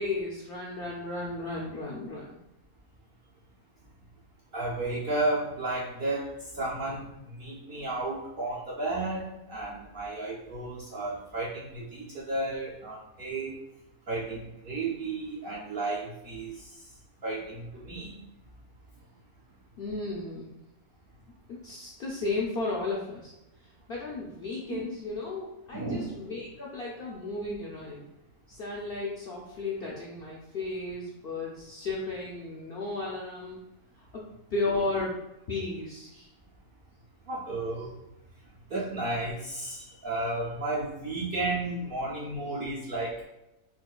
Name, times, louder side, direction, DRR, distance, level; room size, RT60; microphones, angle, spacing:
voice 1, 0.0-2.4 19.8-20.6 21.5-23.3 23.9-28.1 28.5-33.6 34.0-35.2 35.5-36.3, left 3 dB, 70° left, -4 dB, 0.5 m, -34 dB
voice 2, 4.5-13.6 14.1-16.8 17.2-18.1 24.7-24.9 25.7-26.2 37.3-37.9 38.7-43.2, right 2 dB, 60° right, -6 dB, 0.6 m, -33 dB
4.3 x 2.4 x 2.3 m, 0.93 s
omnidirectional pair, 1.5 m